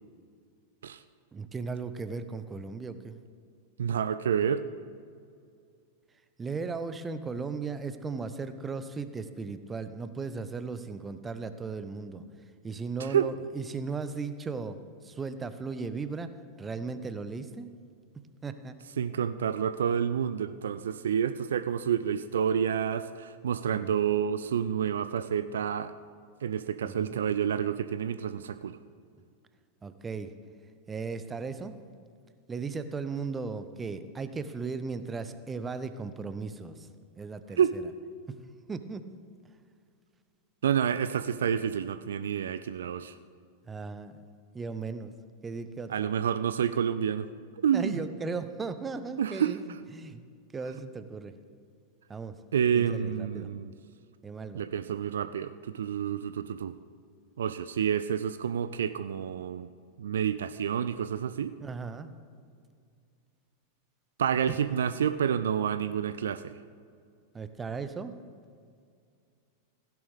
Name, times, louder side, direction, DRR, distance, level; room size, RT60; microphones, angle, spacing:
voice 1, 1.3-3.2 6.4-12.2 12.6-14.8 15.0-16.3 16.6-17.7 18.4-18.8 23.7-24.0 26.8-27.2 29.8-30.3 30.9-31.8 32.5-36.9 37.2-37.8 38.7-39.0 43.7-44.1 44.5-45.1 45.4-46.1 47.7-50.2 50.5-51.3 52.1-52.4 52.7-53.5 54.2-54.6 61.6-62.1 64.5-64.6 67.3-68.1, right 4 dB, 15° right, 11 dB, 0.7 m, -36 dB
voice 2, 3.8-4.6 13.0-13.3 19.0-25.9 26.4-28.8 37.6-37.7 40.6-43.1 45.9-47.3 47.6-48.0 49.2-49.6 52.5-53.7 54.5-56.7 57.4-59.7 60.0-61.5 64.2-66.5, right 8 dB, 65° right, 12 dB, 0.4 m, -29 dB
16.0 x 10.5 x 3.6 m, 2.2 s
figure-of-eight pair, 90°, 0 cm